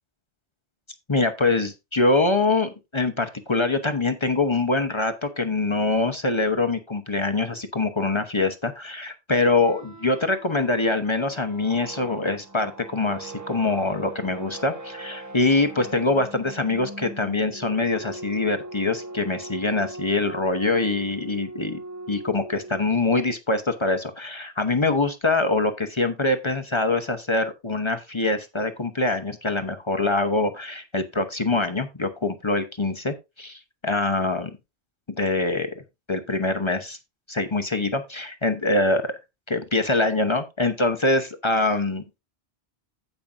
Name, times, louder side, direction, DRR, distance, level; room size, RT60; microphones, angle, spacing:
voice 1, 1.1-21.8 22.1-34.5 35.2-35.7 36.1-37.0 37.3-39.2 39.5-42.0, left 2 dB, 30° left, 7 dB, 0.9 m, -24 dB
sound 1, 9.4-23.1, right 2 dB, 15° right, 0.9 m, -40 dB
16.0 x 5.5 x 2.5 m, 0.24 s
omnidirectional pair, 1.1 m